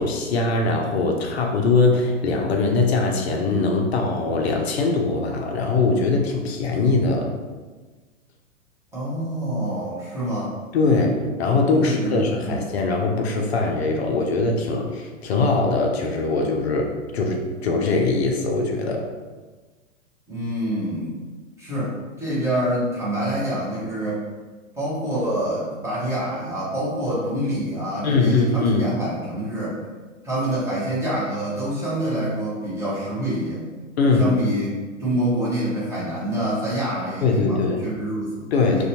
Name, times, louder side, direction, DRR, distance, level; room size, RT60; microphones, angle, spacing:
voice 1, 0.0-7.3 10.7-19.1 28.0-28.9 34.0-34.3 37.2-37.9 38.5-38.8, left 3 dB, 55° left, 1 dB, 0.5 m, -21 dB
voice 2, 8.9-10.5 11.5-12.7 20.3-21.2 21.6-24.2 24.8-29.8 30.2-33.6 34.2-34.7 35.0-38.8, right 1 dB, 5° right, -9 dB, 0.7 m, -26 dB
2.5 x 2.2 x 2.8 m, 1.3 s
figure-of-eight pair, 115°, 39 cm